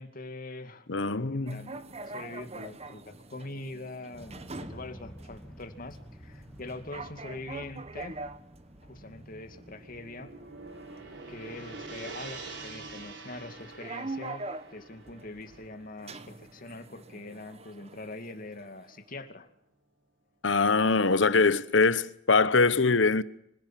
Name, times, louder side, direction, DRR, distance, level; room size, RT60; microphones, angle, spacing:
voice 1, 0.0-8.2 8.8-10.3 11.3-19.5, left 2 dB, 50° left, 2.4 m, -43 dB
voice 2, 0.9-1.7 20.4-23.2, left 4 dB, 80° left, 1.1 m, -23 dB
sound 1, 1.5-19.0, right 2 dB, 35° right, 1.3 m, -45 dB
sound 2, 4.1-12.6, equal, 5° left, 1.7 m, -52 dB
Gong, 9.5-17.9, right 3 dB, 75° right, 4.5 m, -46 dB
25.5 x 16.0 x 7.5 m
head